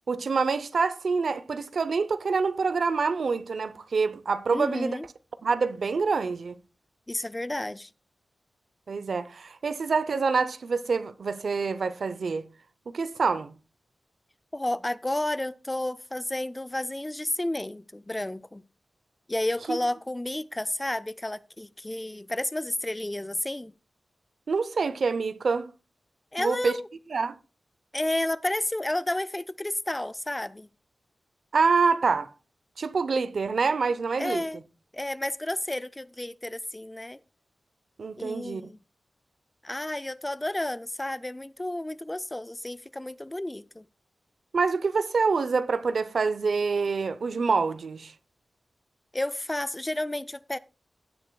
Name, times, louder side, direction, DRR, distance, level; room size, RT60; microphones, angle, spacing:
voice 1, 0.1-5.0 5.4-6.6 8.9-12.4 12.9-13.5 19.7-19.8 24.5-25.7 26.4-26.8 27.1-27.3 31.5-32.3 32.8-34.4 38.0-38.6 44.5-48.1, right 4 dB, 70° right, 0.6 m, -26 dB
voice 2, 4.5-5.1 7.1-7.9 14.5-18.6 19.3-23.7 26.3-26.8 27.9-30.7 34.2-34.6 34.9-37.2 38.2-38.8 39.6-43.9 49.1-50.6, left 1 dB, 15° left, 0.4 m, -31 dB
16.0 x 7.6 x 2.3 m
wide cardioid pair, 95°, 0 cm